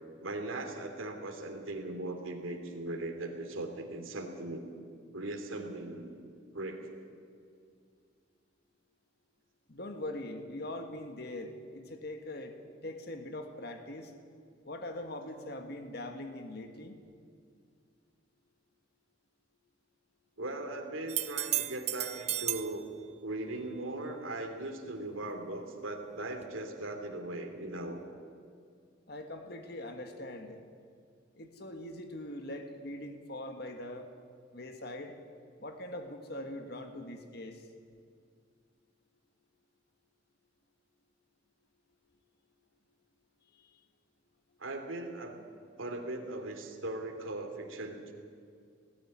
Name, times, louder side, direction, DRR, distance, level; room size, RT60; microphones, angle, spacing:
voice 1, 0.2-4.6 5.1-6.1 6.5-6.9 20.4-22.9 23.2-28.0 44.6-45.4 45.8-48.1, right 2 dB, 85° right, 4 dB, 2.8 m, -39 dB
voice 2, 9.7-12.5 12.8-14.1 14.6-17.0 29.1-30.6 31.3-34.1 34.5-35.1 35.6-37.6 43.6-43.7, left 1 dB, 50° left, 6 dB, 1.6 m, -42 dB
sound 1, 21.1-22.7 26.4-26.5, right 13 dB, 35° right, 0.7 m, -33 dB
19.5 x 14.0 x 9.9 m, 2.3 s
head